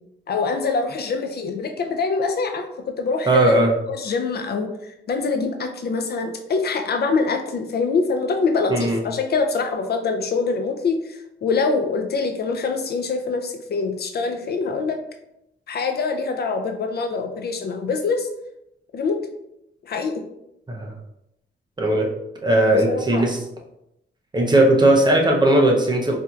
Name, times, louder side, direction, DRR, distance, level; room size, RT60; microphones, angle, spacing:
voice 1, 0.3-3.6 3.9-4.7 5.1-15.0 15.7-18.3 18.9-19.2 19.8-20.2 22.7-23.3, left 4 dB, 55° left, 5 dB, 0.4 m, -24 dB
voice 2, 3.3-3.7 8.7-9.0 20.7-20.9 21.8-22.1 22.4-23.4 24.3-26.2, right 1 dB, 20° right, 0 dB, 0.6 m, -17 dB
4.3 x 2.6 x 2.3 m, 0.83 s
wide cardioid pair, 130°, 20 cm